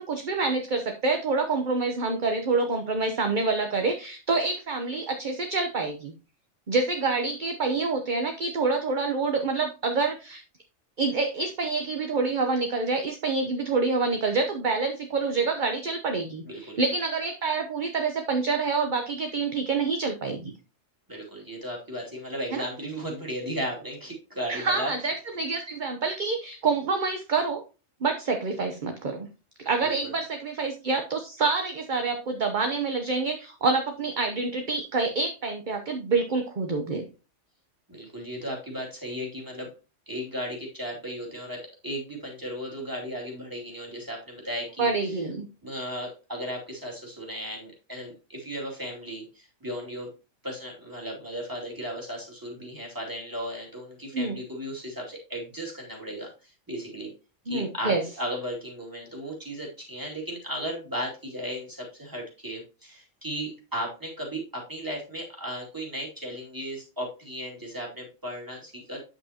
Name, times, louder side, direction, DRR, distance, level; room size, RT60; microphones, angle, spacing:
voice 1, 0.0-6.1 6.7-10.4 11.0-20.5 22.5-22.6 24.5-27.6 28.0-29.3 29.6-37.1 44.8-45.5 54.1-54.4 57.5-58.0, right 4 dB, 45° right, 4 dB, 0.9 m, -27 dB
voice 2, 16.4-16.8 21.1-24.9 29.8-30.1 37.9-39.7 40.1-45.2 45.6-50.1 50.4-57.1 57.4-69.0, equal, 15° right, -2 dB, 2.6 m, -35 dB
8.8 x 7.7 x 2.9 m, 0.32 s
omnidirectional pair, 1.3 m